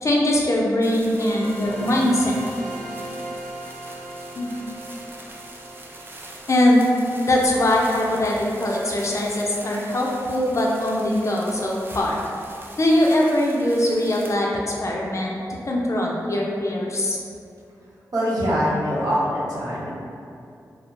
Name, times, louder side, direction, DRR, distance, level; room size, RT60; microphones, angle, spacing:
voice 1, 0.0-2.4 4.4-4.5 6.5-6.8 7.2-12.2 12.8-17.2, left 1 dB, 45° left, -2 dB, 0.5 m, -21 dB
sound 1, 0.8-14.3, right 1 dB, 30° right, 0.4 m, -43 dB
sound 2, 1.2-8.3, right 1 dB, 5° right, 0.8 m, -38 dB
voice 2, 18.1-19.9, equal, 60° right, -8 dB, 0.9 m, -23 dB
2.4 x 2.0 x 3.1 m, 2.4 s
cardioid pair, 45°, 7 cm